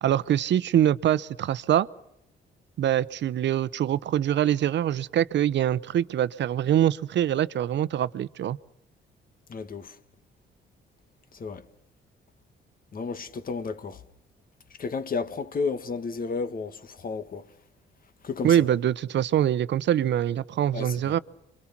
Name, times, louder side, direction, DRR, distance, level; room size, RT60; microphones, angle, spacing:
voice 1, 0.0-1.9 2.8-8.6 18.4-21.2, right 11 dB, 65° right, 0.8 m, -24 dB
voice 2, 9.5-10.0 11.3-11.6 12.9-14.0 14.8-17.5 18.2-18.7 20.7-21.2, left 4 dB, 45° left, 1.8 m, -32 dB
29.0 x 24.5 x 6.0 m
cardioid pair, 90°, 20 cm